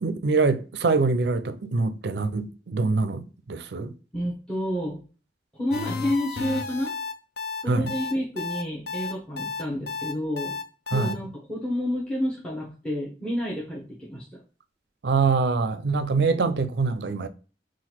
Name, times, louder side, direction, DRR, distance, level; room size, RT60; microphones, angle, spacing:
voice 1, 0.0-3.2 3.5-3.9 7.7-7.9 10.9-11.2 15.0-17.3, right 4 dB, 60° right, 0.5 m, -24 dB
voice 2, 4.1-5.0 5.5-6.9 7.6-10.6 10.9-14.4, equal, 5° left, 0.9 m, -30 dB
sound 1, 5.7-11.1, left 4 dB, 60° left, 0.6 m, -32 dB
3.9 x 2.4 x 4.3 m
head